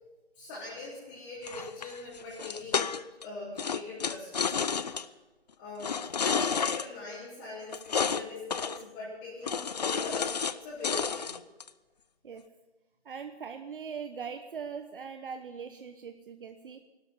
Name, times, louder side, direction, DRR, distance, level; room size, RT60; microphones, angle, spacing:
voice 1, 0.3-3.0 3.2-5.1 5.6-11.4, left 3 dB, 20° left, -9 dB, 3.6 m, -42 dB
sound 1, 1.5-3.2 3.6-5.0 5.8-6.9 7.7-8.2 8.5-8.8 9.4-10.6 10.8-11.7, left 6 dB, 40° left, 0.5 m, -30 dB
voice 2, 13.0-16.8, right 6 dB, 55° right, 7 dB, 1.0 m, -41 dB
16.5 x 12.5 x 5.4 m, 1.2 s
hypercardioid pair, 165°, 32 cm